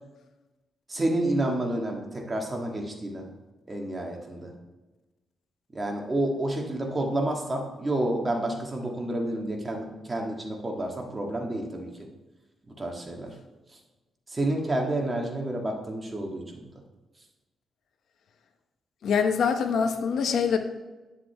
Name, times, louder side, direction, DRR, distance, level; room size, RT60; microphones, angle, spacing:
voice 1, 0.9-3.3 3.7-4.5 5.7-11.9 12.7-13.3 14.3-16.6, right 1 dB, 25° right, 1 dB, 1.7 m, -29 dB
voice 2, 19.0-20.6, left 6 dB, 75° left, 7 dB, 0.8 m, -24 dB
9.9 x 7.4 x 3.4 m, 1.1 s
cardioid pair, 100°, 0 cm